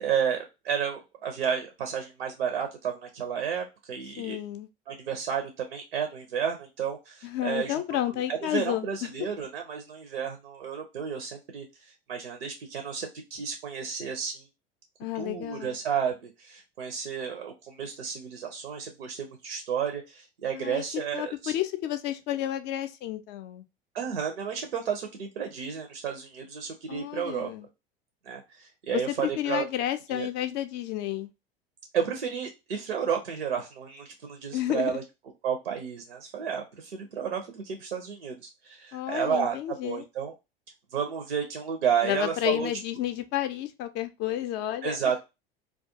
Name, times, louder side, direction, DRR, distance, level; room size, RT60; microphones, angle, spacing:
voice 1, 0.0-4.4 4.9-7.7 8.1-14.4 15.1-21.5 23.9-27.5 28.3-29.7 30.1-30.3 31.9-35.0 35.4-38.4 38.6-40.3 40.9-42.7 44.8-45.2, right 7 dB, 80° right, 0.6 m, -32 dB
voice 2, 4.2-4.7 7.2-9.1 15.0-15.8 20.6-20.8 21.1-23.6 26.9-27.7 28.9-31.3 34.5-35.0 38.9-40.1 42.0-45.2, left 12 dB, 40° left, 0.4 m, -31 dB
2.3 x 2.2 x 2.6 m
figure-of-eight pair, 80°, 29 cm